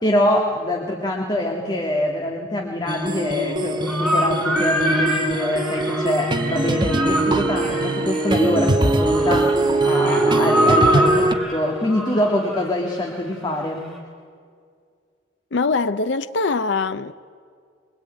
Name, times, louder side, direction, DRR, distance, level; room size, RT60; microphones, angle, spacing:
voice 1, 0.0-13.9, left 1 dB, 25° left, 2.0 m, -24 dB
sound 1, 2.9-11.3, right 2 dB, 25° right, 1.3 m, -21 dB
sound 2, 3.9-13.3, equal, ahead, 5.0 m, -25 dB
voice 2, 15.5-17.1, left 4 dB, 65° left, 0.6 m, -22 dB
23.0 x 20.5 x 8.9 m
head